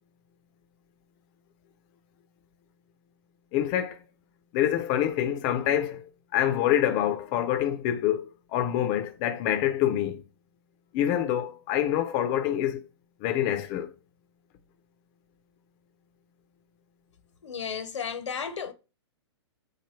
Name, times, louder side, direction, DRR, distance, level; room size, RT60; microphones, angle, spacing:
voice 1, 3.5-4.0 4.5-10.2 10.9-12.8 13.2-13.9, left 11 dB, 30° left, 0.4 m, -26 dB
voice 2, 17.4-18.7, left 6 dB, 85° left, 0.7 m, -33 dB
3.1 x 2.2 x 3.0 m
hypercardioid pair, 130°, 15 cm